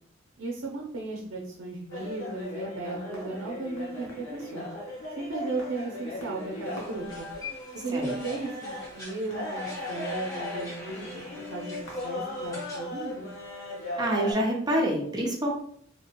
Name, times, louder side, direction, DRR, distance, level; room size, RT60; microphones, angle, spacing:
voice 1, 0.4-4.7 5.2-7.3 7.7-13.3, right 3 dB, 85° right, -2 dB, 0.5 m, -35 dB
sound 1, 1.9-14.3, left 2 dB, 90° left, 0.8 m, -38 dB
sound 2, 6.4-12.8 13.1-14.4, left 2 dB, 15° left, 1.0 m, -45 dB
voice 2, 14.0-15.5, right 1 dB, 20° right, -1 dB, 0.6 m, -27 dB
2.8 x 2.2 x 2.8 m, 0.64 s
head